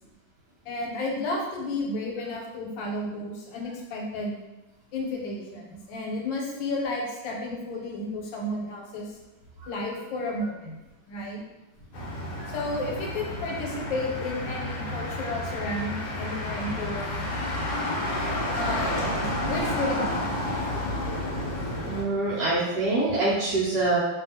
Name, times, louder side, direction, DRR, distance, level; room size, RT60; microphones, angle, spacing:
voice 1, 0.6-4.3 4.9-9.2 9.7-10.8 11.1-11.4 12.5-17.3 18.5-20.3, left 2 dB, 85° left, -1 dB, 1.4 m, -32 dB
Motor vehicle (road), 11.9-22.0, left 1 dB, 70° left, 1.1 m, -30 dB
voice 2, 21.9-24.0, right 2 dB, 75° right, -8 dB, 1.1 m, -25 dB
2.7 x 2.7 x 2.7 m, 1.0 s
omnidirectional pair, 2.0 m